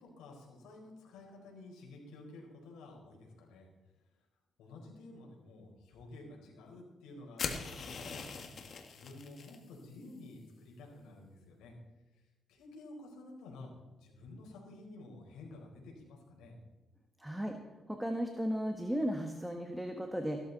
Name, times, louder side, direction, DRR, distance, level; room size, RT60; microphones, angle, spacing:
voice 1, 0.0-3.7 4.6-11.7 12.1-12.2 12.5-13.7 14.0-16.6, left 2 dB, 90° left, -1 dB, 4.5 m, -52 dB
sound 1, 7.4-9.6, left 5 dB, 50° left, 1.8 m, -41 dB
voice 2, 17.2-17.6 17.9-20.4, equal, 5° right, 4 dB, 1.4 m, -35 dB
15.5 x 12.5 x 4.1 m, 1.2 s
cardioid pair, 90°, 0 cm